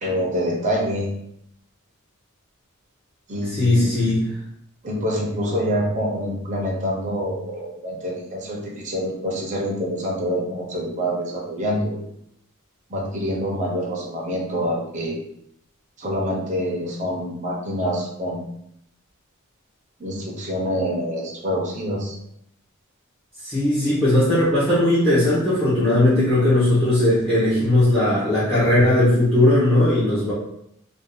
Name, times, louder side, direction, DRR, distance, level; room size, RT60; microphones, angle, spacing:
voice 1, 0.0-1.1 3.3-4.2 4.8-12.1 12.9-15.2 16.0-18.4 20.0-22.1, equal, 35° right, -3 dB, 0.7 m, -26 dB
voice 2, 3.5-4.3 23.4-30.3, left 1 dB, 5° left, -8 dB, 0.8 m, -18 dB
2.6 x 2.4 x 3.7 m, 0.77 s
head